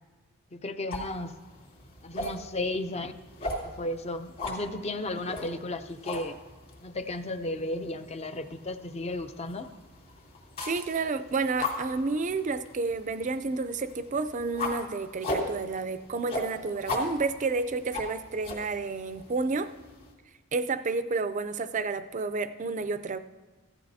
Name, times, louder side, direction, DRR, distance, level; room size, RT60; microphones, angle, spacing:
voice 1, 0.5-1.3 2.0-3.1 3.6-6.4 6.8-9.7, left 2 dB, 30° left, 9 dB, 0.5 m, -34 dB
sound 1, 0.9-20.1, left 2 dB, 45° left, 2.8 m, -39 dB
voice 2, 10.6-19.7 20.5-23.2, right 3 dB, 35° right, 11 dB, 0.4 m, -30 dB
15.5 x 12.5 x 2.7 m, 1.4 s
head